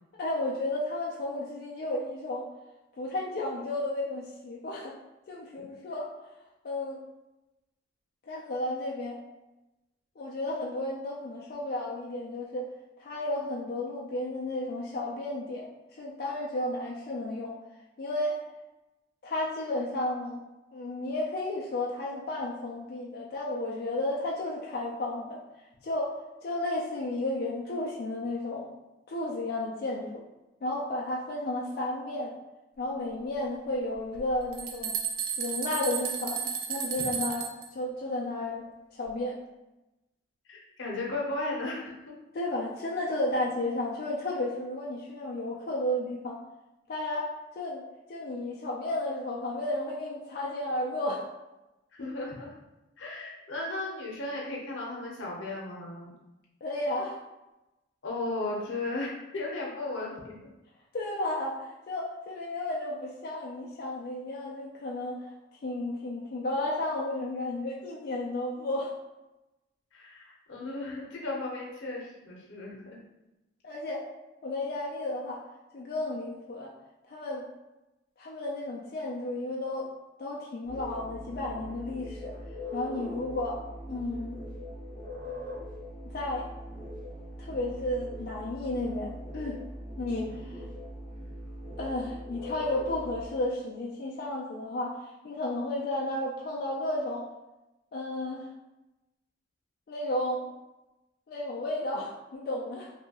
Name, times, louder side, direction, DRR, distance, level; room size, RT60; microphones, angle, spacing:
voice 1, 0.2-2.5 3.0-5.0 5.3-6.1 6.6-7.0 8.3-9.2 10.2-12.7 13.0-17.5 18.0-18.4 19.2-20.4 20.7-25.4 25.8-26.2 26.4-28.7 29.1-30.1 30.6-32.3 32.8-35.0 35.4-36.4 36.7-37.5 37.7-38.7 38.9-39.4 42.3-46.4 46.9-47.8 48.1-51.3 56.6-57.2 60.9-65.3 65.6-68.9 73.6-74.0 74.4-75.4 75.7-76.7 77.1-77.5 78.2-79.9 80.2-82.3 82.7-83.6 83.9-84.4 86.0-86.5 87.4-89.6 90.0-90.6 91.8-95.0 95.2-97.2 97.9-98.5 99.9-100.5 101.3-102.9, left 1 dB, 50° left, -3 dB, 0.3 m, -33 dB
sound 1, 34.1-37.7, right 7 dB, 50° right, 0.3 m, -33 dB
voice 2, 40.5-41.9 52.0-52.6 53.0-56.1 58.0-60.4 69.9-73.0, left 2 dB, 80° left, -3 dB, 0.7 m, -35 dB
sound 2, 80.6-93.3, left 1 dB, 15° left, 0.9 m, -41 dB
2.7 x 2.3 x 2.8 m, 1.0 s
head